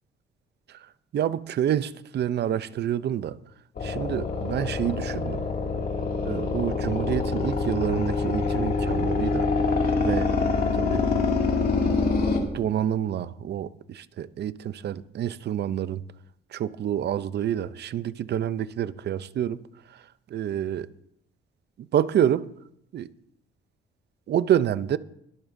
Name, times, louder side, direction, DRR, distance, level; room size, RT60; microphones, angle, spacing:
voice 1, 1.1-3.4 3.8-5.4 6.2-9.5 10.0-10.3 10.7-11.0 12.5-16.0 16.5-19.6 20.3-20.9 21.9-22.5 22.9-23.1 24.3-25.0, right 10 dB, 60° right, 0.6 m, -27 dB
sound 1, 3.8-12.4, left 4 dB, 50° left, 2.4 m, -25 dB
22.5 x 8.9 x 2.6 m
cardioid pair, 90°, 20 cm